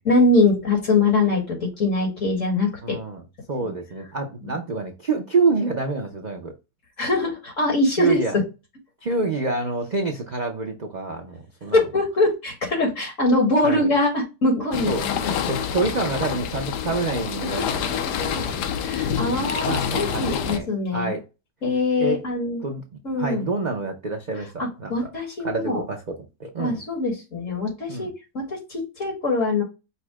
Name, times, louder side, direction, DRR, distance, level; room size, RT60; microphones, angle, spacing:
voice 1, 0.0-3.0 3.6-3.7 4.4-4.6 7.0-8.2 11.7-15.3 17.6-18.4 18.8-21.1 21.6-22.6 23.0-23.4 24.4-25.8 26.6-29.6, left 2 dB, 50° left, 1.7 m, -23 dB
voice 2, 2.8-3.2 3.5-6.5 8.0-8.3 9.0-11.8 13.6-13.9 14.9-15.1 15.5-17.9 18.3-18.7 19.6-21.2 22.0-22.2 22.6-22.8 23.2-25.1 25.4-26.0 26.4-26.8 27.9-28.1, right 3 dB, 75° right, 0.4 m, -27 dB
sound 1, 14.7-20.6, left 8 dB, 80° left, 1.2 m, -27 dB
5.5 x 2.1 x 4.6 m
omnidirectional pair, 1.8 m